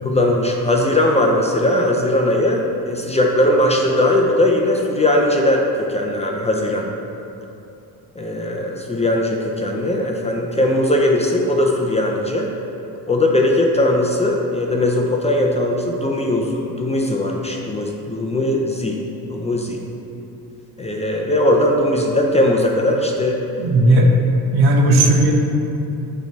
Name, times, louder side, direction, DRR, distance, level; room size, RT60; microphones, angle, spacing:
voice 1, 0.0-6.9 8.2-12.5 13.1-19.0 19.3-19.8 20.8-23.4 23.9-24.0 25.0-25.1, left 1 dB, 15° left, 0 dB, 0.5 m, -19 dB
voice 2, 23.6-24.1 24.5-25.3, right 2 dB, 65° right, 1 dB, 1.0 m, -14 dB
8.2 x 3.3 x 4.5 m, 2.8 s
cardioid pair, 115°, 40 cm